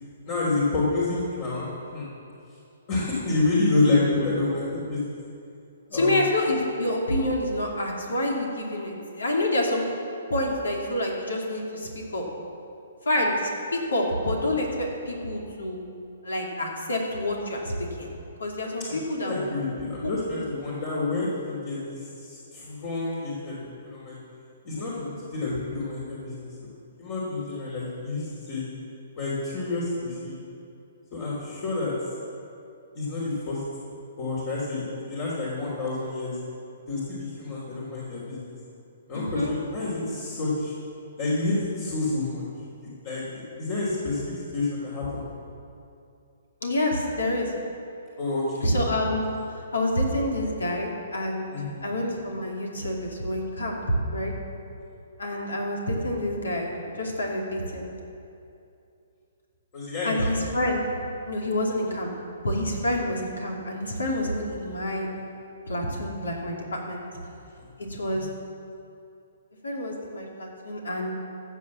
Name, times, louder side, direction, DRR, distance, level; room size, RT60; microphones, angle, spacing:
voice 1, 0.3-2.1 2.9-5.1 5.9-6.3 19.2-24.2 24.6-26.7 27.0-28.6 29.2-30.4 31.1-31.9 32.9-33.6 34.2-36.4 36.9-38.5 39.1-40.7 41.2-42.4 42.8-44.2 44.5-45.2 48.2-48.7 51.5-51.7 59.7-60.3 67.6-67.7 68.0-68.3, left 2 dB, 45° left, -6 dB, 3.4 m, -28 dB
voice 2, 5.9-9.8 10.3-12.3 13.0-15.8 16.2-18.1 18.4-19.5 20.0-20.1 39.1-39.5 46.6-47.5 48.6-49.2 49.7-51.5 51.8-53.8 54.1-54.3 55.2-56.7 57.0-57.9 60.0-60.8 61.3-62.1 62.4-65.1 65.7-67.0 67.8-68.3 69.6-71.1, left 1 dB, 80° left, 0 dB, 2.7 m, -27 dB
15.5 x 6.4 x 7.4 m, 2.6 s
figure-of-eight pair, 130°, 0 cm